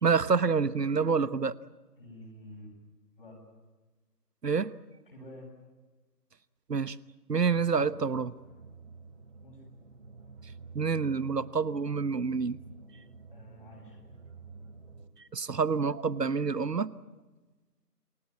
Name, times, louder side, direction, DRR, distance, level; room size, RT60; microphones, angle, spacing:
voice 1, 0.0-1.6 4.4-4.7 6.7-7.0 7.3-8.3 10.7-12.6 15.3-16.9, right 5 dB, 75° right, 17 dB, 1.2 m, -27 dB
voice 2, 2.0-2.7 3.2-3.4 5.0-5.5 9.4-9.6 13.3-14.0, left 1 dB, 35° left, -1 dB, 7.4 m, -49 dB
sound 1, 7.5-15.1, right 4 dB, 50° right, 3.2 m, -50 dB
28.5 x 17.5 x 9.5 m, 1.2 s
figure-of-eight pair, 175°, 48 cm